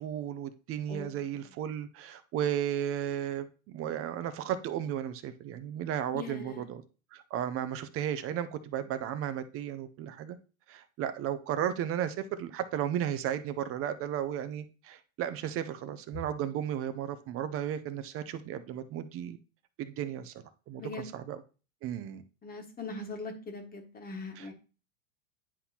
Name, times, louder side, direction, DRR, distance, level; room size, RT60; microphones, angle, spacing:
voice 1, 0.0-6.8 7.1-10.4 10.7-19.4 19.8-20.3 20.7-21.4 21.8-22.2 24.4-24.5, right 10 dB, 35° right, 11 dB, 0.6 m, -34 dB
voice 2, 0.9-1.2 6.1-6.6 20.8-21.2 22.4-24.5, left 3 dB, 20° left, 4 dB, 1.5 m, -41 dB
9.8 x 4.0 x 2.9 m, 0.34 s
supercardioid pair, 120°, 42 cm